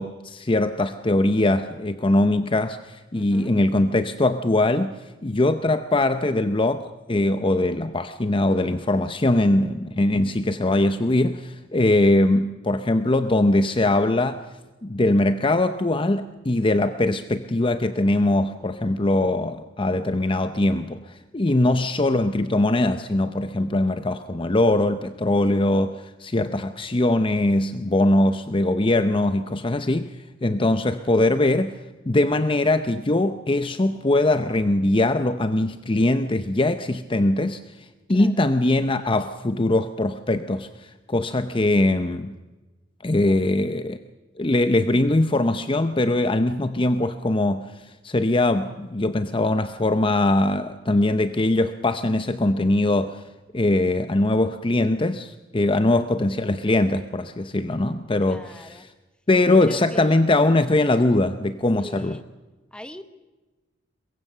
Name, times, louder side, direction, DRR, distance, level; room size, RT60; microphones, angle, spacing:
voice 1, 0.0-4.9 5.2-14.4 14.8-30.1 30.4-31.7 32.1-37.6 38.1-42.3 43.0-44.0 44.4-53.2 53.5-58.9 59.3-62.2, left 2 dB, 25° left, 10 dB, 0.7 m, -21 dB
voice 2, 3.1-3.5 21.5-21.8 38.1-38.4 43.2-43.5 55.7-56.1 58.3-58.9 59.4-60.1 61.8-62.2 62.7-63.0, equal, 5° left, 10 dB, 1.1 m, -41 dB
23.0 x 22.0 x 6.7 m, 1.2 s
head